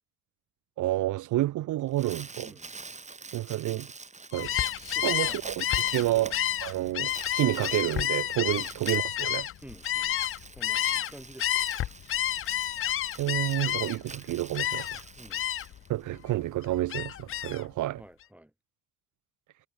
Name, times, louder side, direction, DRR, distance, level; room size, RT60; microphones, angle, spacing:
voice 1, 0.8-2.5 3.3-3.9 4.3-4.6 5.0-9.5 13.2-15.0 15.9-18.0, right 15 dB, 80° right, 0.9 m, -29 dB
Crumpling crinkling, 1.7-16.3, right 4 dB, 25° right, 2.7 m, -46 dB
Gull seagull, 4.3-11.1 11.4-14.1 14.5-15.0 15.3-15.8 16.2-17.6, left 11 dB, 45° left, 0.5 m, -30 dB
voice 2, 4.9-5.4 8.6-8.7 9.6-10.2 10.6-11.6 15.2-15.4 18.0-18.5, right 1 dB, 5° right, 5.9 m, -49 dB
cardioid pair, 90°, 30 cm